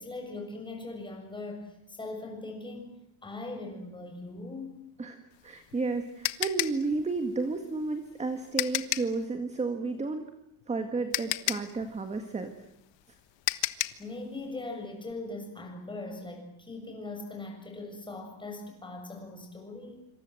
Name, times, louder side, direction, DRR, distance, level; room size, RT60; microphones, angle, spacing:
voice 1, 0.0-2.9 3.2-4.8 14.0-20.0, left 2 dB, 10° left, 3 dB, 6.8 m, -40 dB
voice 2, 5.0-10.2 10.7-12.5, right 3 dB, 15° right, 7 dB, 1.8 m, -32 dB
sound 1, 5.3-9.2 10.6-10.7 11.1-14.1, left 18 dB, 60° left, 1.4 m, -32 dB
27.0 x 26.0 x 7.8 m, 0.82 s
cardioid pair, 170°, 50 cm